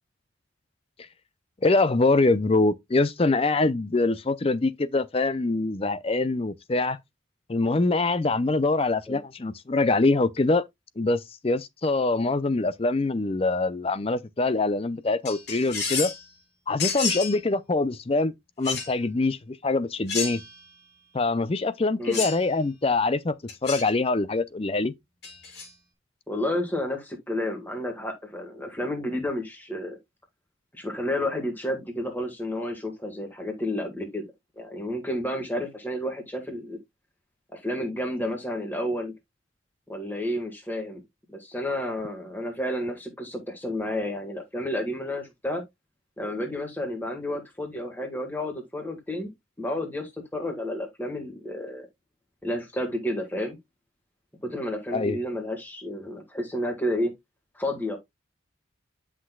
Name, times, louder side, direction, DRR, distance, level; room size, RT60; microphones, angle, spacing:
voice 1, 1.6-7.0 7.5-10.6 11.0-16.1 16.7-20.4 21.1-23.4 23.6-24.9 54.9-55.2, left 3 dB, 30° left, 0.5 m, -24 dB
sound 1, 15.2-16.2 16.8-17.4 18.6-18.9 20.1-20.6 22.1-22.5 23.5-23.9 25.2-25.7, left 5 dB, 55° left, 3.0 m, -30 dB
voice 2, 26.3-30.0 30.7-34.2 34.6-36.8 37.5-39.1 39.9-41.0 41.3-45.6 46.2-49.3 49.6-51.9 52.4-53.6 54.4-57.1 57.5-58.0, left 1 dB, 10° left, 1.6 m, -31 dB
10.0 x 6.0 x 2.3 m
head